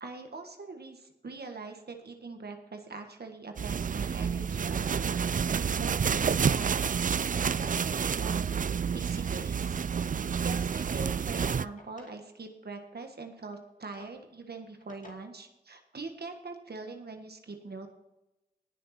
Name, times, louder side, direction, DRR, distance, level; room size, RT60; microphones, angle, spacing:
voice 1, 0.0-5.5 5.7-6.7 7.3-8.7 8.9-9.8 10.4-17.9, right 3 dB, 75° right, 5 dB, 1.5 m, -43 dB
sound 1, 3.6-11.6, right 7 dB, 55° right, 0.4 m, -29 dB
Drawer open or close, 8.9-9.8 10.2-10.3 11.1-12.2 13.4-15.1, left 2 dB, 50° left, 2.4 m, -59 dB
18.5 x 6.8 x 4.3 m, 0.93 s
cardioid pair, 45°, 17 cm